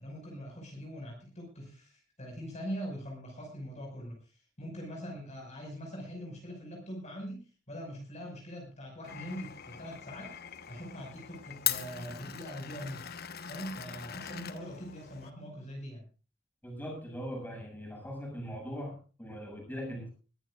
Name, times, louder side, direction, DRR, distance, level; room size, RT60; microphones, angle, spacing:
voice 1, 0.0-4.3 4.6-10.3 10.7-13.1 13.5-16.0, equal, 35° left, 1 dB, 5.7 m, -42 dB
Glass, 9.0-15.3, left 10 dB, 55° left, 1.2 m, -40 dB
voice 2, 16.6-20.1, equal, 10° left, 1 dB, 7.1 m, -40 dB
21.5 x 14.0 x 2.5 m, 0.34 s
head